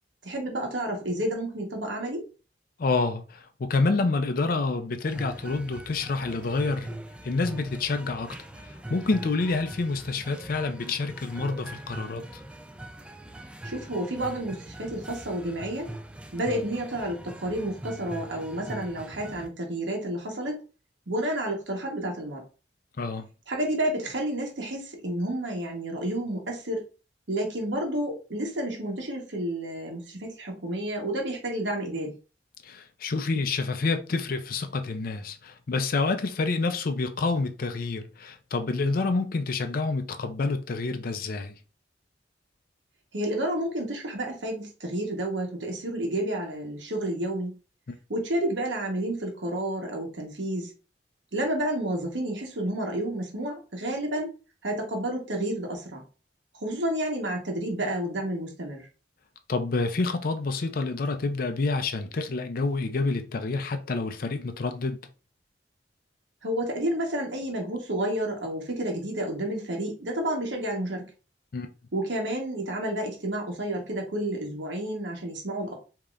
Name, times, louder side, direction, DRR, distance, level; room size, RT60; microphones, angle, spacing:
voice 1, 0.2-2.3 13.6-15.9 16.3-20.6 21.1-22.4 23.5-26.8 27.3-32.1 43.1-47.5 48.1-50.7 51.3-54.4 54.6-56.0 56.5-58.9 66.4-71.1 71.9-75.7, right 1 dB, 85° right, 1.1 m, -30 dB
voice 2, 2.8-6.9 7.2-12.4 23.0-23.3 32.6-41.5 47.9-48.0 59.5-65.0 71.5-71.7, left 3 dB, 50° left, 0.5 m, -28 dB
sound 1, 5.0-19.5, right 1 dB, 5° right, 0.4 m, -42 dB
5.0 x 2.8 x 2.4 m
head